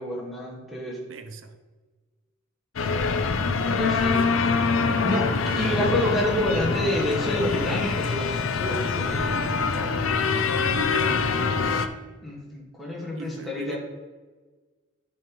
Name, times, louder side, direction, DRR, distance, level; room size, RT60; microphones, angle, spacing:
voice 1, 0.0-1.0 3.5-4.2 4.9-5.2 5.6-9.7 12.2-13.8, left 1 dB, ahead, -5 dB, 1.6 m, -28 dB
voice 2, 1.1-1.6 3.4-4.3 4.8-5.8 9.0-11.6 13.2-13.8, right 2 dB, 70° right, 10 dB, 0.6 m, -39 dB
sound 1, 2.8-11.9, left 4 dB, 80° left, 0.5 m, -24 dB
7.6 x 3.2 x 5.2 m, 1.3 s
head